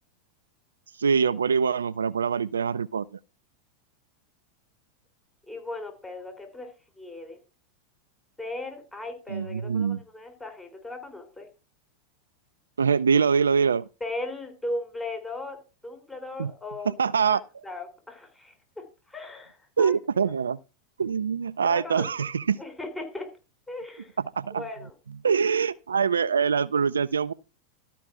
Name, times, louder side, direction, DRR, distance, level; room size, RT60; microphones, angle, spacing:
voice 1, 1.0-3.1 9.3-10.0 12.8-13.9 16.4-16.5 16.9-17.4 19.8-20.6 21.0-22.6 24.4-24.6 25.2-27.3, right 6 dB, 85° right, 0.4 m, -24 dB
voice 2, 5.5-6.7 7.0-7.4 8.4-11.5 14.0-15.6 15.8-16.9 17.2-20.3 21.6-22.1 22.6-23.3 23.7-24.2 24.5-24.9, left 2 dB, 10° left, 3.9 m, -37 dB
13.0 x 5.4 x 6.0 m
hypercardioid pair, 95°, 0 cm